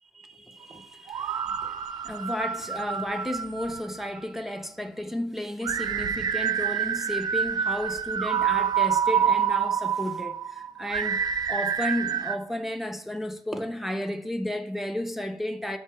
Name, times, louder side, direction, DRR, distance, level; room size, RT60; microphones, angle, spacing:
voice 1, 0.1-11.2 11.5-15.8, left 1 dB, 5° right, 0.8 m, -33 dB
sound 1, 1.1-4.2 5.6-12.4, right 8 dB, 70° right, 0.5 m, -27 dB
11.5 x 4.7 x 7.0 m
wide cardioid pair, 140°, 7 cm